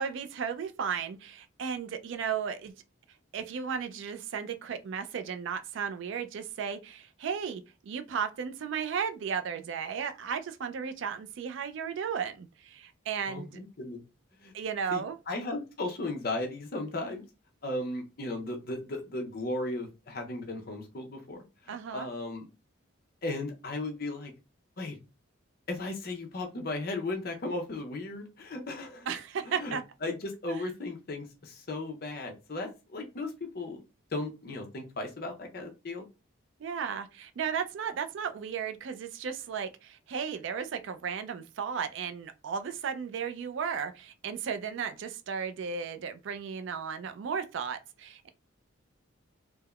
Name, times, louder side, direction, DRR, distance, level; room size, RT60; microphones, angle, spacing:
voice 1, 0.0-2.7 3.3-13.6 14.5-15.2 21.7-22.1 29.1-29.8 30.5-30.6 36.6-48.3, right 6 dB, 60° right, 0.3 m, -35 dB
voice 2, 13.3-14.0 14.4-14.5 14.9-15.0 15.3-17.2 17.6-22.5 23.2-24.3 24.8-25.0 25.7-29.1 29.5-33.8 34.1-36.0, left 2 dB, 45° left, 0.6 m, -36 dB
3.4 x 2.0 x 2.2 m
head